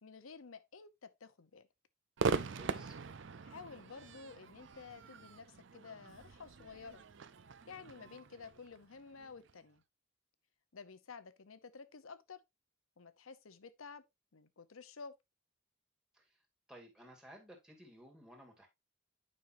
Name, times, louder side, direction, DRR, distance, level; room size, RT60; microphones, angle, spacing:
voice 1, 0.0-1.7 3.4-7.0 7.7-9.8 10.7-12.4 13.0-14.0 14.3-15.1, left 5 dB, 80° left, 0.8 m, -52 dB
Crowd / Fireworks, 2.2-9.5, right 4 dB, 60° right, 0.5 m, -41 dB
voice 2, 2.3-3.0 16.1-16.4 16.7-18.7, equal, 5° right, 2.2 m, -56 dB
9.6 x 5.5 x 2.6 m
head